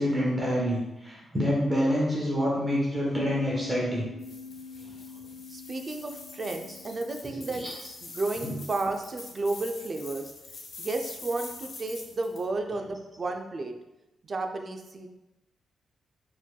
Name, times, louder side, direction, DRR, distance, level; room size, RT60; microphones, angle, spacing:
voice 1, 0.0-4.1 7.6-7.7 8.4-8.5, equal, 15° right, -5 dB, 1.0 m, -27 dB
sound 1, 3.1-8.5, left 3 dB, 85° left, 0.7 m, -43 dB
sound 2, 4.2-12.4, left 3 dB, 65° left, 0.9 m, -45 dB
voice 2, 5.5-10.3 10.8-13.7 14.2-15.1, right 2 dB, 35° right, 5 dB, 0.4 m, -32 dB
4.6 x 4.3 x 2.2 m, 0.96 s
wide cardioid pair, 135°, 0 cm